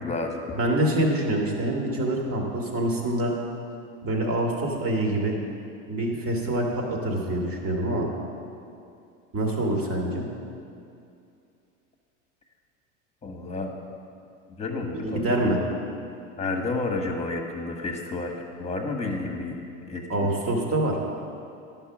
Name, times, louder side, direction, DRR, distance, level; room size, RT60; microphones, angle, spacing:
voice 1, 0.0-0.4 13.2-13.7 14.5-15.6 16.4-19.6 19.9-20.3, left 3 dB, 20° left, 3 dB, 1.4 m, -31 dB
voice 2, 0.5-3.3 4.0-5.4 5.9-8.1 9.3-10.3 15.0-15.6 20.1-21.0, right 1 dB, 40° right, 0 dB, 2.0 m, -25 dB
11.0 x 5.7 x 6.0 m, 2.6 s
hypercardioid pair, 90°, 36 cm